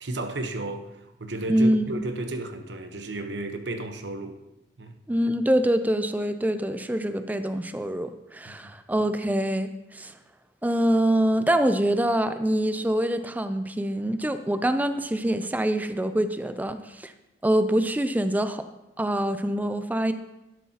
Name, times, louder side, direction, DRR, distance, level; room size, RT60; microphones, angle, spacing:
voice 1, 0.0-4.4 4.8-5.0 8.4-8.7, right 2 dB, 65° right, 1.0 m, -33 dB
voice 2, 1.5-1.9 5.1-10.1 10.6-17.1 17.4-18.6 19.0-20.1, right 1 dB, 10° right, 0.4 m, -25 dB
12.0 x 11.0 x 2.9 m
head